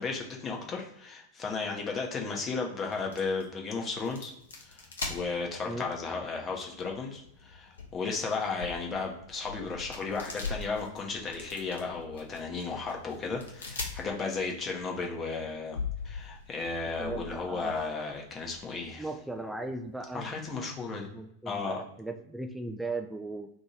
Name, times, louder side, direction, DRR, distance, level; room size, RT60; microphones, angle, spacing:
voice 1, 0.0-15.8 16.0-19.0 20.1-21.1 21.5-21.8, left 4 dB, 25° left, 0 dB, 0.7 m, -34 dB
sound 1, 2.8-20.5, left 4 dB, 70° left, 0.8 m, -43 dB
voice 2, 16.9-17.8 19.0-20.4 21.1-23.5, right 2 dB, 5° right, 4 dB, 0.3 m, -37 dB
2.7 x 2.7 x 4.3 m, 0.77 s
figure-of-eight pair, 90°, 0 cm